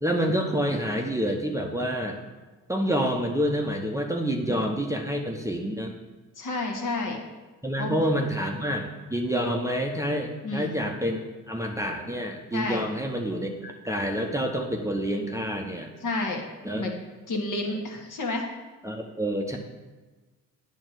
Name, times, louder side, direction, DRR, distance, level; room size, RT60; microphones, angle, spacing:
voice 1, 0.0-2.2 2.7-6.0 7.6-15.9 16.6-16.9 18.8-19.6, equal, 10° right, 1 dB, 0.8 m, -28 dB
voice 2, 4.3-4.7 6.4-7.2 7.8-8.0 10.4-10.7 12.5-12.8 16.0-16.4 16.8-16.9 17.3-18.4, left 2 dB, 50° left, 1 dB, 1.6 m, -30 dB
8.7 x 3.1 x 6.5 m, 1.2 s
hypercardioid pair, 55°, 40 cm